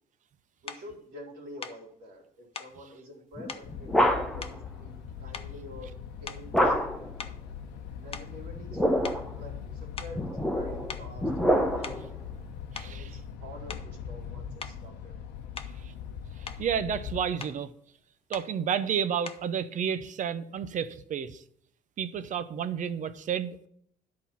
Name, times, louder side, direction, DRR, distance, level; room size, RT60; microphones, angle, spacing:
voice 1, 0.6-3.9 4.1-4.9 5.2-7.1 8.0-8.8 9.3-9.6 9.8-12.3 12.8-15.1, left 1 dB, 70° right, 0 dB, 2.9 m, -47 dB
sound 1, 0.7-0.9 1.6-1.8 2.5-2.8 3.5-3.7 4.4-5.0 5.3-5.7 6.2-6.6 7.2-8.8 9.0-9.3 10.0-10.2 10.9-11.1 11.6-12.1 12.7-13.0 13.7-13.9 14.6-14.8 15.6-15.8 16.2-16.7 17.4-17.6 18.3-18.5 19.2-19.5, left 6 dB, 35° left, 0.8 m, -42 dB
sound 2, 3.4-4.5 6.5-7.1 8.5-9.3 10.1-12.1, equal, ahead, 1.1 m, -26 dB
sound 3, 3.6-17.2, left 7 dB, 90° left, 0.9 m, -41 dB
voice 2, 12.7-13.2 15.8-15.9 16.4-17.7 18.3-21.4 22.0-23.7, right 8 dB, 50° right, 13 dB, 0.7 m, -31 dB
10.5 x 4.3 x 5.8 m, 0.68 s
cardioid pair, 110°, 17 cm